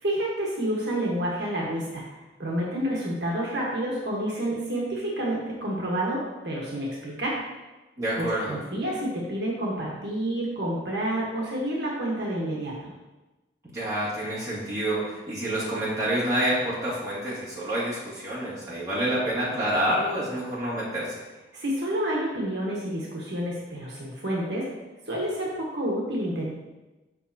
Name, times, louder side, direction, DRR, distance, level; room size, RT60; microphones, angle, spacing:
voice 1, 0.0-2.0 2.4-7.4 8.2-12.9 21.5-24.7 25.1-26.6, right 1 dB, 65° right, -4 dB, 1.3 m, -29 dB
voice 2, 8.0-8.6 13.6-21.2, right 1 dB, 20° right, -9 dB, 2.1 m, -28 dB
7.4 x 5.2 x 2.8 m, 1.1 s
head